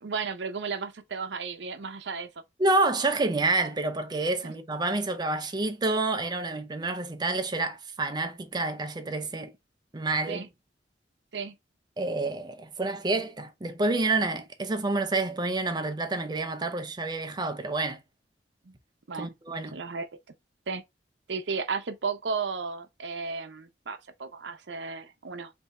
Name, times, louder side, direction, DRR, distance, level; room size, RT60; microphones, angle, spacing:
voice 1, 0.0-2.3 4.4-4.5 10.3-10.5 11.3-11.5 18.7-18.8 19.1-19.3 19.7-20.1 20.7-20.8 21.3-25.5, right 5 dB, 75° right, 0.7 m, -34 dB
voice 2, 2.6-9.5 9.9-10.5 12.0-18.0 19.2-19.8, right 2 dB, 25° right, 0.6 m, -28 dB
3.5 x 2.7 x 4.1 m
head